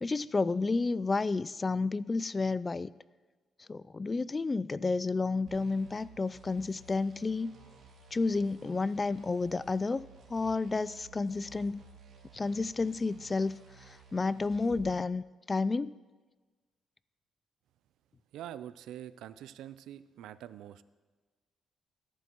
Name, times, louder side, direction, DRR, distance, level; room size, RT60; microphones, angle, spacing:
voice 1, 0.0-2.9 3.7-7.5 8.1-10.0 10.3-11.8 12.3-13.6 14.1-15.9, left 3 dB, 25° left, 19 dB, 0.3 m, -31 dB
sound 1, 5.5-14.9, right 4 dB, 65° right, 2.9 m, -55 dB
voice 2, 18.3-20.8, right 11 dB, 85° right, 15 dB, 0.4 m, -45 dB
21.5 x 11.5 x 3.0 m, 1.3 s
cardioid pair, 90°, 0 cm